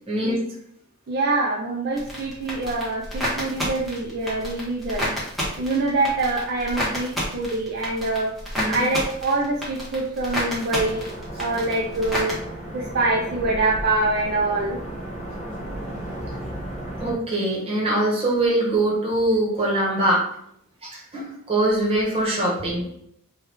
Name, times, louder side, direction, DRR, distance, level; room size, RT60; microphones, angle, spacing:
voice 1, 0.1-0.4 8.6-8.8 17.0-20.2 20.8-22.9, right 1 dB, 25° right, -4 dB, 1.0 m, -23 dB
voice 2, 1.1-5.1 5.6-8.3 8.7-11.0 11.4-12.4 12.7-14.8, right 2 dB, 45° right, -2 dB, 0.4 m, -25 dB
sound 1, 1.9-12.3, equal, ahead, 0.9 m, -30 dB
sound 2, 10.7-17.1, right 1 dB, 35° left, 0.7 m, -34 dB
3.0 x 2.3 x 3.3 m, 0.70 s
head